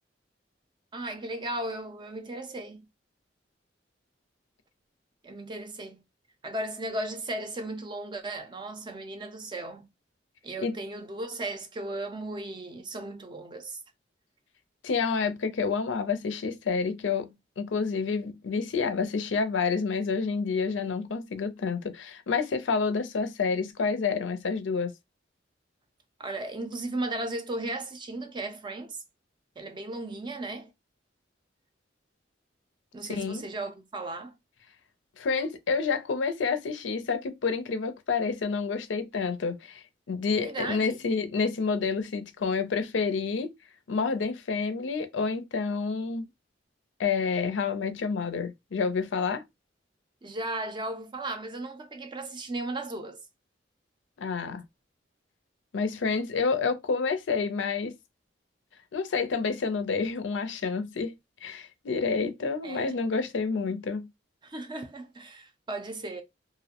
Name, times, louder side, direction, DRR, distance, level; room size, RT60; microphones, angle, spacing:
voice 1, 0.9-2.9 5.2-6.0 6.4-9.9 10.4-13.8 26.2-29.0 29.6-30.7 32.9-34.3 40.4-41.0 50.2-53.2 62.6-63.1 64.4-66.2, right 2 dB, 25° right, 0.4 m, -36 dB
voice 2, 14.8-24.9 33.1-33.4 35.2-43.5 43.9-46.2 47.0-49.4 54.2-54.6 55.7-57.9 58.9-61.1 61.4-64.1, left 5 dB, 85° left, 0.5 m, -29 dB
2.4 x 2.0 x 2.8 m
head